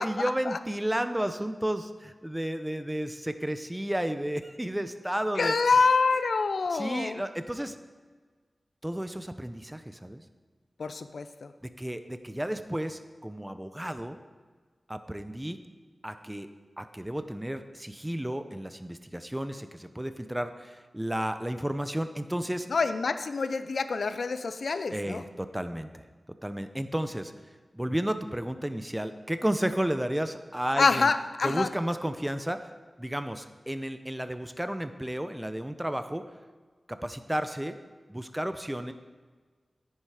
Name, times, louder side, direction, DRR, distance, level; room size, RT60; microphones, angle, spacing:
voice 1, 0.0-5.5 6.7-7.8 8.8-10.2 11.6-14.2 14.9-15.6 16.0-16.5 16.8-22.7 24.9-26.0 26.4-27.3 27.7-31.1 31.4-32.7 33.0-36.2 36.9-37.8 38.1-38.9, right 1 dB, 10° right, 10 dB, 0.7 m, -32 dB
voice 2, 5.4-7.2 10.8-11.5 22.7-25.2 30.8-31.7, left 4 dB, 85° left, 11 dB, 0.5 m, -26 dB
10.0 x 10.0 x 4.9 m, 1.5 s
wide cardioid pair, 90°, 0 cm